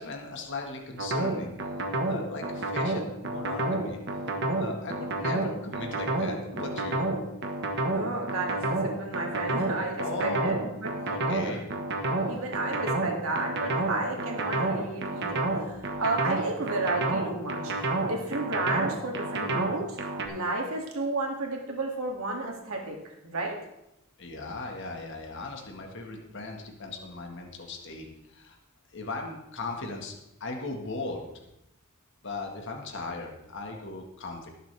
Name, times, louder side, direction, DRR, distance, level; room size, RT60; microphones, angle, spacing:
voice 1, 0.0-1.5 2.0-4.0 4.5-7.0 10.0-10.5 11.0-11.7 12.1-12.2 24.2-28.6 28.9-30.1 30.4-31.4 32.2-34.5, left 3 dB, 55° left, 2 dB, 1.6 m, -38 dB
sound 1, 1.0-20.3, right 2 dB, 55° right, 1.4 m, -29 dB
voice 2, 7.9-10.9 11.5-11.6 12.3-20.0 20.2-23.6, right 2 dB, 75° right, 0 dB, 2.4 m, -32 dB
18.5 x 7.5 x 3.4 m, 0.88 s
head